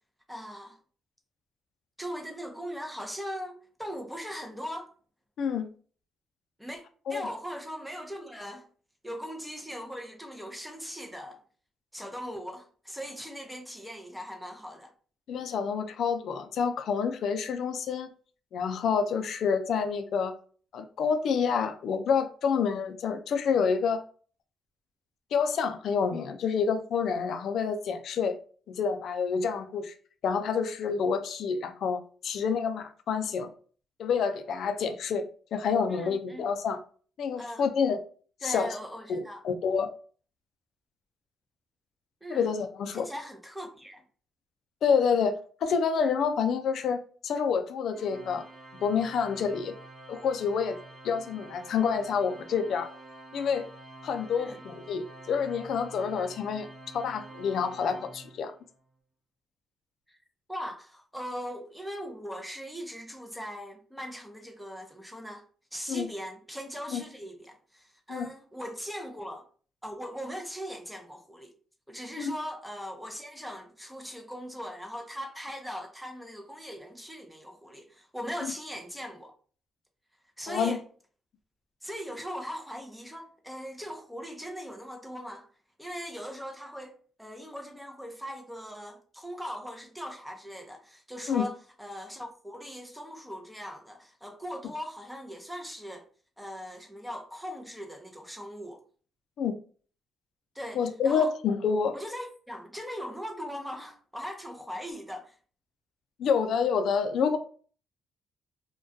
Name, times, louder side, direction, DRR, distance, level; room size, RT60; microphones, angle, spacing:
voice 1, 0.3-0.8 2.0-4.9 6.6-6.8 7.1-8.7 9.0-11.4 11.9-14.9 35.9-36.5 37.4-37.6 38.4-39.4 42.2-42.5 42.9-44.0 54.3-54.6 60.1-60.2 60.5-65.4 65.7-69.4 69.8-71.5 71.9-79.3 80.4-80.8 81.8-85.5 85.8-96.0 96.4-98.8 100.5-101.3 101.9-105.4, equal, 5° right, 0.5 m, -40 dB
voice 2, 5.4-5.7 7.1-7.3 15.3-18.1 18.5-20.4 20.7-24.0 25.3-28.4 28.7-29.9 30.2-33.5 34.0-35.3 35.5-36.8 37.2-38.0 38.4-38.8 39.1-39.9 42.3-43.1 44.8-48.5 48.8-49.7 50.1-50.8 51.0-52.9 53.3-53.7 54.0-56.7 56.9-58.5 65.9-66.1 66.9-67.0 68.1-68.3 72.2-72.4 80.5-80.8 91.3-91.5 99.4-99.5 100.7-101.9 106.2-107.4, left 6 dB, 70° left, 0.3 m, -28 dB
Organ, 47.9-58.7, right 2 dB, 35° right, 0.8 m, -48 dB
2.2 x 2.2 x 2.5 m
cardioid pair, 90°, 0 cm